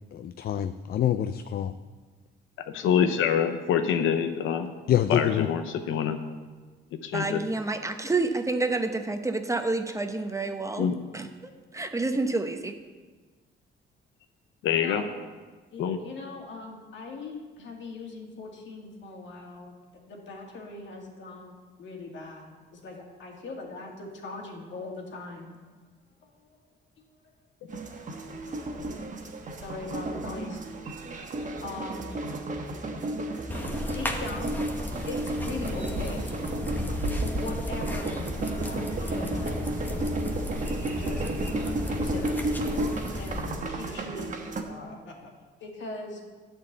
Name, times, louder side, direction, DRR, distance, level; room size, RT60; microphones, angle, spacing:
voice 1, 0.1-1.7 4.9-5.5, left 10 dB, 50° left, 11 dB, 0.4 m, -26 dB
voice 2, 2.7-4.7 5.1-6.2 7.0-7.4 10.8-11.0 14.6-15.0 15.8-16.0, left 8 dB, 85° left, 7 dB, 0.7 m, -25 dB
voice 3, 7.1-10.9 11.1-12.7, right 3 dB, 15° right, 7 dB, 0.8 m, -29 dB
voice 4, 14.7-15.1 15.7-19.7 20.1-25.6 26.2-26.6 27.0-27.2 27.9-30.6 30.9-31.0 31.6-32.7 33.5-33.6 33.9-36.3 37.3-40.0 41.0-42.4 42.8-44.4 44.7-45.3 45.6-46.2, left 3 dB, 70° left, 1 dB, 2.1 m, -41 dB
sound 1, 27.7-44.6, right 2 dB, 40° right, 1.2 m, -33 dB
sound 2, 33.5-43.5, left 1 dB, 10° left, 1.2 m, -34 dB
10.5 x 4.6 x 8.0 m, 1.4 s
cardioid pair, 90°, 20 cm